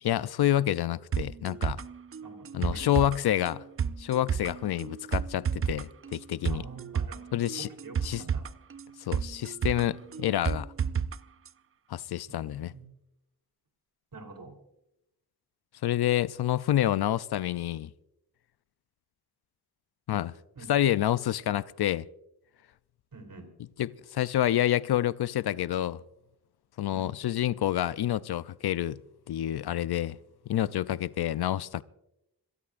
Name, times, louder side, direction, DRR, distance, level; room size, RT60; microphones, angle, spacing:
voice 1, 0.0-1.8 2.5-3.6 4.0-6.6 7.3-7.7 8.0-8.2 9.0-10.7 11.9-12.7 15.8-17.9 20.1-20.3 20.7-22.1 23.8-26.0 26.8-29.0 29.3-30.2 30.5-31.8, left 12 dB, 90° left, 0.5 m, -28 dB
sound 1, 1.1-11.2 11.5-11.6, right 7 dB, 35° right, 0.4 m, -32 dB
voice 2, 2.2-3.0 6.5-7.2 7.6-8.5 12.3-12.9 14.1-14.5 20.6-20.7 23.1-23.5 26.9-27.2, right 3 dB, 65° right, 3.5 m, -46 dB
26.0 x 18.0 x 2.5 m
wide cardioid pair, 125°, 37 cm